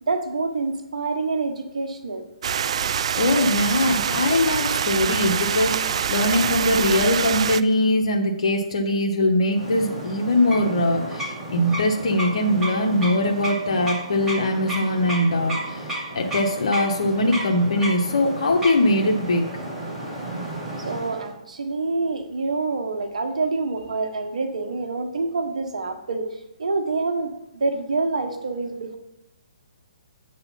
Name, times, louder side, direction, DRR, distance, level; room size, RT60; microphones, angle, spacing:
voice 1, 0.0-2.3 20.8-29.0, right 3 dB, 80° right, 6 dB, 1.2 m, -27 dB
sound 1, 2.4-7.6, right 8 dB, 60° right, 0.3 m, -25 dB
voice 2, 3.2-15.9 16.1-19.4, left 1 dB, 65° left, 2 dB, 1.1 m, -21 dB
sound 2, 9.5-21.3, right 1 dB, 10° right, 2.9 m, -32 dB
8.1 x 4.1 x 5.6 m, 0.89 s
hypercardioid pair, 145°, 4 cm